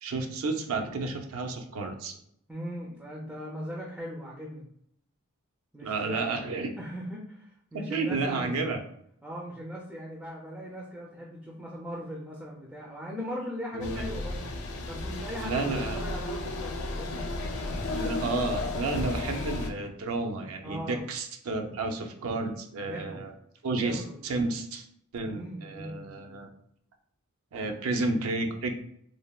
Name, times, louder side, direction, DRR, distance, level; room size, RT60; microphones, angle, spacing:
voice 1, 0.0-2.1 5.8-6.7 7.7-8.8 13.7-14.0 15.4-16.0 17.9-23.3 23.6-24.8 25.1-26.5 27.5-28.7, right 3 dB, 65° right, 4 dB, 0.4 m, -31 dB
voice 2, 2.5-4.7 5.7-6.5 6.8-8.6 9.2-14.4 14.8-17.3 17.6-18.3 20.6-21.1 22.8-23.2 23.8-24.3 25.3-26.4, equal, 5° right, -4 dB, 0.4 m, -39 dB
sound 1, 13.8-19.7, left 2 dB, 70° left, 0.4 m, -33 dB
3.2 x 2.1 x 2.3 m, 0.69 s
head